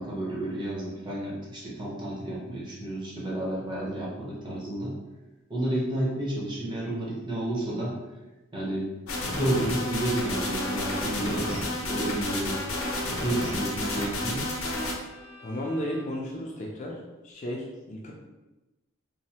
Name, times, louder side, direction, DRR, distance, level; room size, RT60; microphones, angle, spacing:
voice 1, 0.0-4.9 5.5-8.0 8.5-8.9 9.3-12.6 13.2-14.5, right 1 dB, 20° right, -5 dB, 0.6 m, -31 dB
sound 1, 9.1-14.9, left 1 dB, 90° left, 0.6 m, -31 dB
Bowed string instrument, 9.7-16.3, equal, 65° right, 0.5 m, -47 dB
voice 2, 15.4-17.0 17.2-18.1, equal, 35° left, -1 dB, 0.3 m, -33 dB
3.1 x 2.0 x 2.8 m, 1.1 s
head